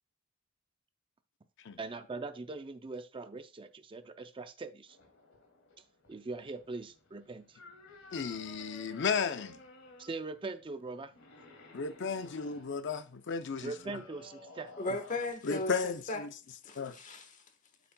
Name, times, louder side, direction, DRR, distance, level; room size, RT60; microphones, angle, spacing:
voice 1, 1.8-5.0 6.1-7.6 10.0-11.1 13.6-14.7, right 3 dB, 25° right, 0.4 m, -41 dB
sound 1, 4.9-15.3, left 2 dB, 85° left, 2.4 m, -55 dB
voice 2, 8.1-9.6 11.7-13.7 15.4-16.3 16.8-16.9, left 5 dB, 60° left, 0.5 m, -34 dB
voice 3, 14.8-16.2 16.6-17.4, left 2 dB, 40° left, 1.3 m, -37 dB
9.1 x 7.0 x 2.2 m
head